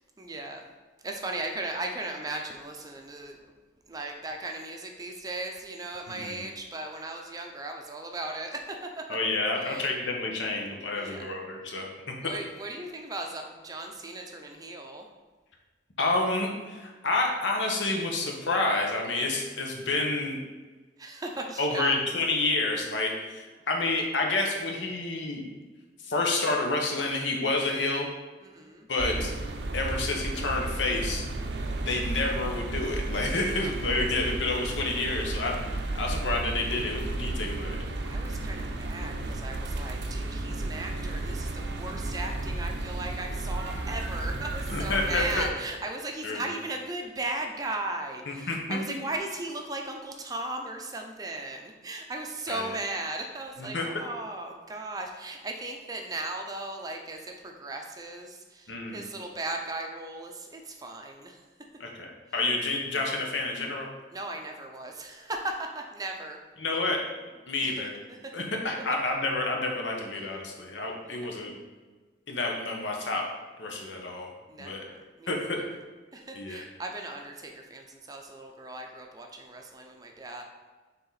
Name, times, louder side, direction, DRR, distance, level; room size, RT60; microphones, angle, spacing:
voice 1, 0.2-0.6 1.0-3.5 3.9-9.0 9.6-9.9 10.9-11.2 11.7-11.9 12.2-15.1 21.0-22.0 28.4-28.9 33.5-33.7 38.0-61.4 64.1-66.4 67.6-67.9 68.2-68.3 71.0-71.3 74.5-75.8 76.1-80.4, right 2 dB, 20° right, 2 dB, 0.5 m, -37 dB
voice 2, 6.1-6.4 9.1-12.3 16.0-20.4 21.6-25.4 26.0-28.1 28.9-29.3 29.7-31.2 31.8-37.8 44.7-45.5 46.2-46.4 48.3-49.0 52.5-52.7 53.6-53.9 58.7-59.1 61.8-62.1 62.3-63.9 66.6-67.0 67.5-67.9 68.3-71.5 72.3-73.2 73.6-74.3 74.6-74.8 75.3-75.6 76.3-76.6, left 2 dB, 75° left, 0 dB, 1.1 m, -29 dB
sound 1, 29.0-45.5, right 2 dB, 65° right, 0.6 m, -33 dB
6.8 x 3.6 x 4.0 m, 1.3 s
head